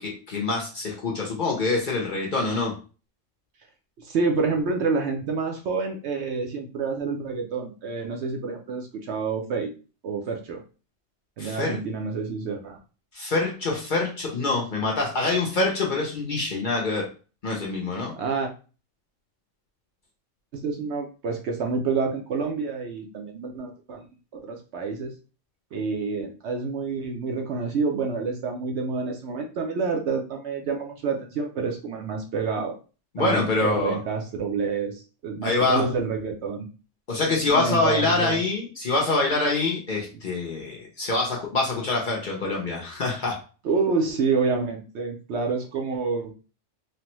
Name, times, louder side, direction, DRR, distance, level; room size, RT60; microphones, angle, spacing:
voice 1, 0.0-2.7 11.4-11.8 13.1-17.1 17.4-18.1 33.1-34.0 35.4-35.8 37.1-43.4, left 3 dB, 50° left, -1 dB, 0.7 m, -25 dB
voice 2, 4.0-9.7 10.0-10.6 11.4-12.8 18.1-18.5 20.5-24.1 24.3-25.1 25.7-32.7 33.2-36.7 37.5-38.4 43.6-46.3, right 4 dB, 65° right, 3 dB, 0.8 m, -28 dB
3.2 x 2.1 x 2.9 m, 0.35 s
omnidirectional pair, 1.3 m